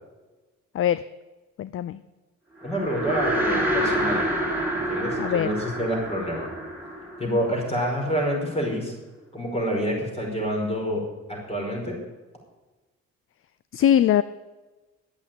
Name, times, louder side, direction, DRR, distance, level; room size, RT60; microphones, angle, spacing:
voice 1, 1.6-2.0 5.2-5.5 13.7-14.2, left 10 dB, 45° left, 16 dB, 0.4 m, -21 dB
voice 2, 2.6-4.3 4.7-6.5 7.2-8.9 9.3-12.0, equal, 20° left, -1 dB, 5.1 m, -27 dB
sound 1, 2.6-8.1, right 1 dB, 5° right, 3.2 m, -27 dB
10.5 x 8.4 x 8.9 m, 1.2 s
cardioid pair, 90°, 30 cm